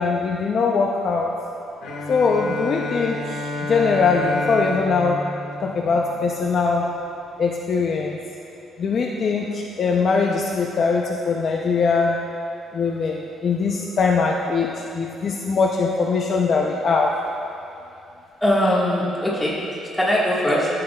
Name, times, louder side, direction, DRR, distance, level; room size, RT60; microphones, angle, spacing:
voice 1, 0.0-1.3 2.1-5.2 5.6-6.8 7.4-8.2 8.8-12.2 12.7-17.1, left 4 dB, 35° left, -1 dB, 0.5 m, -21 dB
Bowed string instrument, 1.8-6.5, left 2 dB, 80° left, 1.5 m, -30 dB
voice 2, 18.4-19.7 19.9-20.7, equal, 5° left, -7 dB, 1.5 m, -20 dB
14.0 x 7.7 x 2.3 m, 2.6 s
cardioid pair, 175°, 0 cm